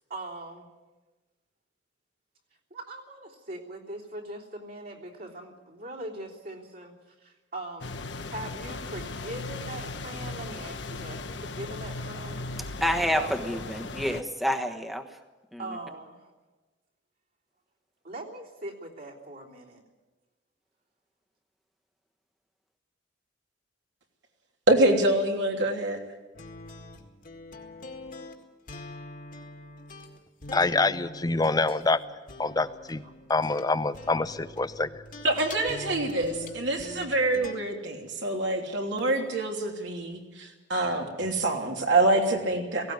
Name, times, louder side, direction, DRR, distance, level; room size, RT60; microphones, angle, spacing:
voice 1, 0.1-0.7 2.7-6.9 7.2-12.4 13.1-13.3 15.6-16.3 18.0-19.8, right 1 dB, 55° right, -2 dB, 3.4 m, -41 dB
sound 1, 7.8-14.2, left 3 dB, 65° left, 1.2 m, -37 dB
voice 2, 12.6-15.2 15.5-15.8, equal, ahead, 5 dB, 1.3 m, -29 dB
voice 3, 24.7-26.0 35.2-42.9, right 2 dB, 70° right, 2 dB, 3.0 m, -26 dB
sound 2, 26.3-37.5, left 2 dB, 45° left, 2.0 m, -43 dB
voice 4, 30.5-32.0 32.4-33.0 33.3-34.9, left 3 dB, 20° left, 14 dB, 0.6 m, -26 dB
17.5 x 17.0 x 9.4 m, 1.2 s
head